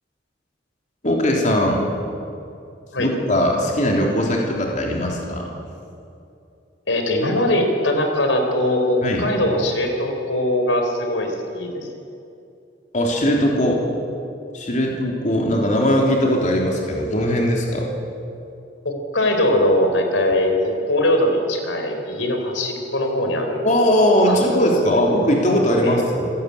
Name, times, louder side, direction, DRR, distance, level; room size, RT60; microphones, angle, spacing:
voice 1, 1.0-1.9 3.0-5.5 9.0-9.3 12.9-13.8 14.5-17.9 23.6-26.3, equal, 40° left, 0 dB, 3.6 m, -19 dB
voice 2, 6.9-11.9 18.8-23.7 24.3-24.7 25.8-26.0, left 1 dB, 90° left, 4 dB, 4.1 m, -21 dB
27.0 x 17.5 x 8.5 m, 2.6 s
head